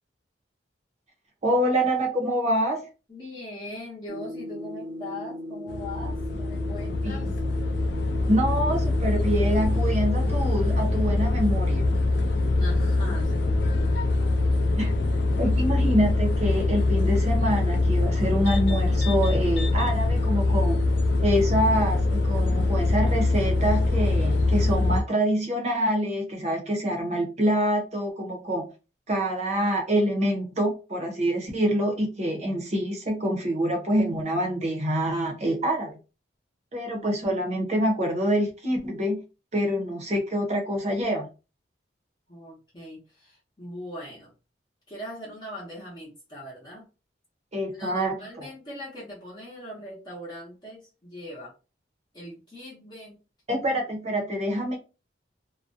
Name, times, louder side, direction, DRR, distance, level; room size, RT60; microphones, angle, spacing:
voice 1, 1.4-2.9 7.0-7.3 8.3-11.9 14.8-15.0 15.4-20.8 21.2-28.7 29.1-36.0 36.7-39.2 39.5-41.3 47.5-48.5 53.5-54.8, equal, 40° right, 2 dB, 0.7 m, -26 dB
voice 2, 3.1-7.3 12.6-13.9 42.3-44.3 44.9-46.9 47.7-51.5 52.1-53.2, left 1 dB, 25° left, -6 dB, 0.7 m, -40 dB
sound 1, 4.1-9.9, left 1 dB, 85° right, 0.7 m, -38 dB
sound 2, 5.7-25.0, left 2 dB, 65° left, 0.4 m, -23 dB
2.4 x 2.1 x 2.5 m, 0.32 s
head